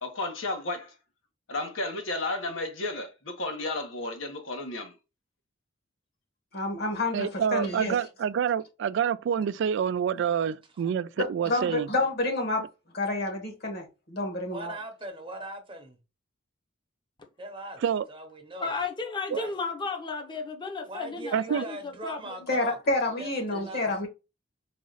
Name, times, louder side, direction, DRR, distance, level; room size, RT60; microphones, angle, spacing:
voice 1, 0.0-0.9 1.5-4.9, left 2 dB, 80° left, 1.3 m, -33 dB
voice 2, 6.5-8.0 11.4-12.7 12.9-14.7 22.5-24.1, left 2 dB, 55° left, 1.5 m, -29 dB
voice 3, 7.1-11.9 17.8-18.1 19.3-19.4 21.3-21.6, right 8 dB, 65° right, 0.3 m, -27 dB
voice 4, 10.4-10.9 11.3-11.4 14.5-16.0 17.4-17.8 18.1-18.7 19.3-19.5 20.8-22.8 23.2-24.1, right 1 dB, 25° right, 0.9 m, -41 dB
voice 5, 18.6-22.5, left 4 dB, 25° left, 0.8 m, -34 dB
4.1 x 2.4 x 3.9 m
head